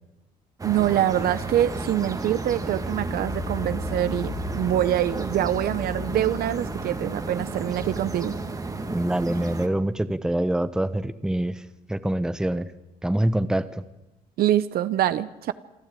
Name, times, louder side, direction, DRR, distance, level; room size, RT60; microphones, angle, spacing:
sound 1, 0.6-9.7, right 2 dB, 20° right, 1.9 m, -32 dB
voice 1, 0.6-8.3 14.4-15.5, right 12 dB, 65° right, 15 dB, 0.9 m, -25 dB
voice 2, 8.9-11.6 11.9-12.7 13.0-13.7, right 1 dB, 5° right, 14 dB, 0.9 m, -25 dB
27.0 x 12.0 x 9.1 m, 0.99 s
cardioid pair, 110°, 17 cm